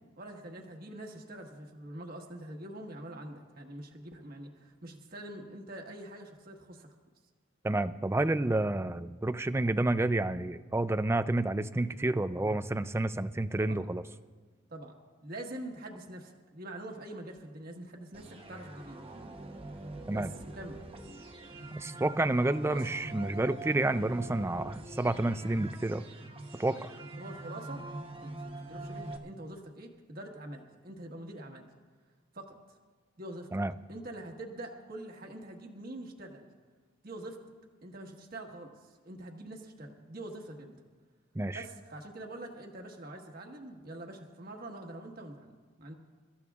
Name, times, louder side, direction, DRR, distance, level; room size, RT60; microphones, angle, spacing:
voice 1, 0.2-6.9 13.6-13.8 14.7-19.0 20.1-20.8 22.7-22.8 27.2-27.9 28.2-31.7 32.3-32.6 33.2-33.5 33.9-36.5 37.0-37.4 37.8-40.8 41.5-45.5 45.8-45.9, right 1 dB, 50° right, 1 dB, 1.4 m, -45 dB
voice 2, 7.6-14.0 20.1-20.3 21.8-26.1 26.5-27.0 33.5-33.7 41.3-41.6, right 2 dB, 15° right, 13 dB, 0.4 m, -29 dB
sound 1, 18.1-29.2, right 2 dB, 30° right, 1.0 m, -44 dB
29.5 x 14.0 x 2.4 m, 1.4 s
head